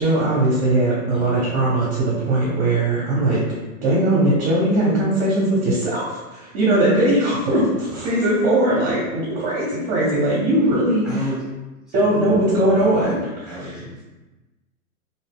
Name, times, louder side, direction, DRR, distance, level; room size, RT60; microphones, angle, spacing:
voice 1, 0.0-3.4 3.8-11.0 11.9-13.1, right 1 dB, 35° right, -6 dB, 0.9 m, -19 dB
voice 2, 1.1-1.5 7.9-8.2 11.0-11.5 12.0-14.0, equal, ahead, -8 dB, 0.9 m, -33 dB
2.7 x 2.0 x 3.5 m, 1.1 s
hypercardioid pair, 135°, 43 cm